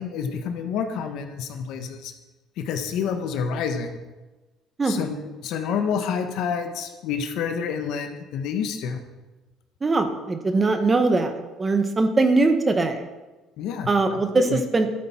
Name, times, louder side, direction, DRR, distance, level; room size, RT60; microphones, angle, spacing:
voice 1, 0.0-2.1 2.6-4.0 4.8-5.2 5.4-9.0 13.6-14.6, left 6 dB, 75° left, 6 dB, 1.2 m, -28 dB
voice 2, 9.8-13.1 13.9-14.9, right 3 dB, 25° right, 7 dB, 1.2 m, -21 dB
12.0 x 8.3 x 4.4 m, 1.2 s
cardioid pair, 110°, 0 cm